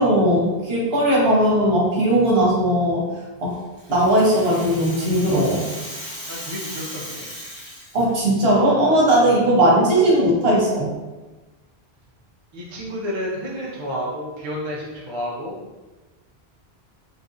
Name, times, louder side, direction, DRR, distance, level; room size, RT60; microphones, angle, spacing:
voice 1, 0.0-3.0 3.4-3.5 3.9-5.6 7.9-10.9, right 1 dB, 70° right, -5 dB, 1.1 m, -18 dB
Rattle (instrument), 3.5-8.2, equal, 10° left, 0.9 m, -36 dB
voice 2, 6.3-7.3 12.5-15.6, equal, 35° right, -5 dB, 0.6 m, -30 dB
3.2 x 2.6 x 2.5 m, 1.2 s
omnidirectional pair, 1.1 m